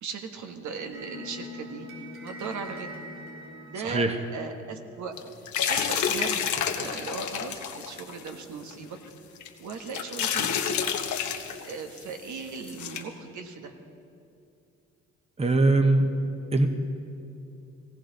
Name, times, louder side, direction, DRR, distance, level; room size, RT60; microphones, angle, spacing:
voice 1, 0.0-1.9 2.2-3.0 3.7-4.1 4.3-5.2 5.7-6.5 6.8-9.0 9.6-10.6 11.6-13.8, right 5 dB, 75° right, 5 dB, 1.4 m, -38 dB
sound 1, 0.9-5.2, left 1 dB, 45° right, 3.4 m, -43 dB
voice 2, 3.8-4.1 15.4-16.1 16.5-16.7, right 2 dB, 20° right, 6 dB, 1.0 m, -21 dB
sound 2, 5.2-8.3 8.7-8.8 9.4-11.7 12.0-12.1 12.6-13.0, left 8 dB, 75° left, 1.1 m, -29 dB
17.5 x 16.5 x 3.9 m, 2.7 s
cardioid pair, 90°, 30 cm